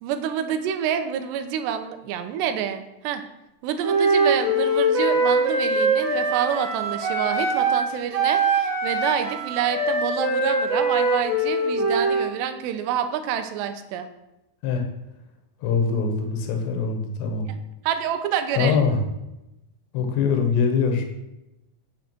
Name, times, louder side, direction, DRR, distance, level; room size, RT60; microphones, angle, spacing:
voice 1, 0.0-3.2 3.6-14.1 17.8-18.8, right 9 dB, 85° right, 9 dB, 3.0 m, -27 dB
Wind instrument woodwind instrument, 3.8-12.3, right 2 dB, 35° right, 2.1 m, -22 dB
voice 2, 15.6-17.5 18.6-19.0 19.9-21.1, left 5 dB, 85° left, 4 dB, 3.6 m, -23 dB
9.4 x 7.8 x 6.0 m, 0.94 s
omnidirectional pair, 4.9 m